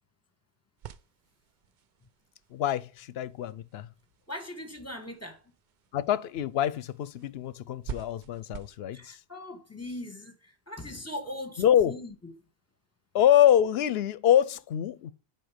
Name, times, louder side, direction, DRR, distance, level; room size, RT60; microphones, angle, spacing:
sound 1, 0.8-8.8, right 8 dB, 55° right, 0.6 m, -48 dB
voice 1, 2.5-3.9 5.9-9.2 11.6-11.9 13.1-15.1, left 11 dB, 75° left, 0.8 m, -25 dB
voice 2, 4.3-5.4 8.9-12.1, left 1 dB, 15° left, 1.4 m, -40 dB
7.9 x 4.7 x 5.0 m
omnidirectional pair, 1.1 m